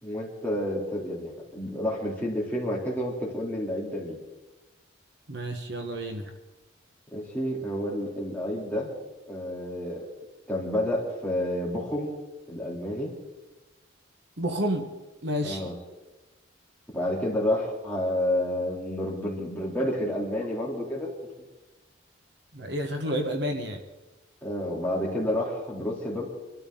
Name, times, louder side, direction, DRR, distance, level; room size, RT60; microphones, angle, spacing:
voice 1, 0.0-4.2 7.1-8.9 9.3-10.1 10.5-12.1 12.5-13.1 15.4-15.7 16.9-21.1 24.4-26.3, left 1 dB, 10° left, -4 dB, 3.3 m, -30 dB
voice 2, 5.3-6.3 14.4-14.9 15.2-15.7 22.5-23.8, equal, 55° right, 5 dB, 1.4 m, -30 dB
25.0 x 12.5 x 3.9 m, 1.1 s
head